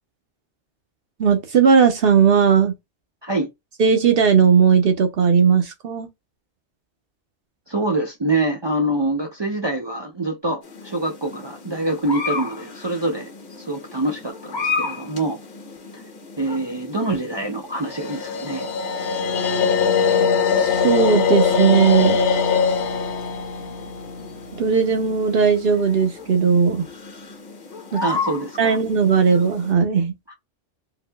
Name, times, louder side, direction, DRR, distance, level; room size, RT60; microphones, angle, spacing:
voice 1, 1.2-2.7 3.8-6.1 20.5-22.3 24.6-26.9 27.9-28.2 28.6-30.1, right 6 dB, 60° right, 0.8 m, -17 dB
voice 2, 7.7-13.3 13.6-15.4 15.9-16.0 16.4-18.7 28.0-28.8 30.3-30.4, right 2 dB, 40° right, 0.4 m, -25 dB
sound 1, 10.6-29.7, left 4 dB, 40° left, 0.9 m, -35 dB
sound 2, 17.8-25.0, left 6 dB, 75° left, 0.9 m, -21 dB
3.7 x 2.7 x 2.2 m
omnidirectional pair, 1.2 m